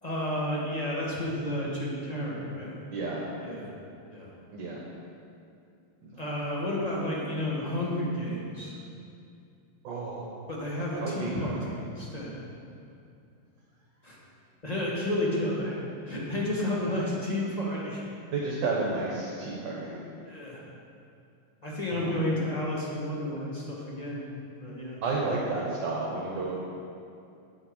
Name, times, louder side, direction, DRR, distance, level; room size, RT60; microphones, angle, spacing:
voice 1, 0.0-2.7 3.4-3.7 4.1-4.3 6.2-8.8 10.5-12.4 14.0-14.2 14.6-15.8 16.1-18.0 20.3-20.6 21.6-24.2 24.6-25.0, left 1 dB, 20° left, -5 dB, 1.5 m, -31 dB
voice 2, 2.9-3.2 4.5-4.8 6.0-6.2 9.8-10.4 10.9-11.6 18.3-20.0 21.9-22.2 25.0-26.6, right 3 dB, 65° right, -4 dB, 1.7 m, -32 dB
7.9 x 7.9 x 5.4 m, 2.5 s
omnidirectional pair, 2.3 m